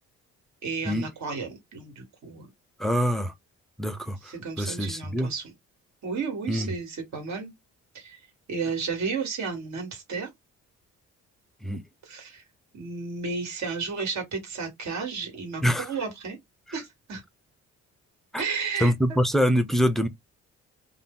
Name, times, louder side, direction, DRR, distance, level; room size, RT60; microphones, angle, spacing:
voice 1, 0.6-2.5 4.2-5.4 6.0-7.5 7.9-8.2 8.5-10.3 12.0-12.4 12.7-16.4 16.7-17.2 18.4-19.2, right 5 dB, 65° right, 1.5 m, -33 dB
voice 2, 2.8-3.3 3.8-5.3 6.5-6.7 11.6-11.8 15.6-15.9 18.3-18.4 18.8-20.1, equal, ahead, 0.5 m, -25 dB
2.6 x 2.0 x 3.6 m
cardioid pair, 90°, 30 cm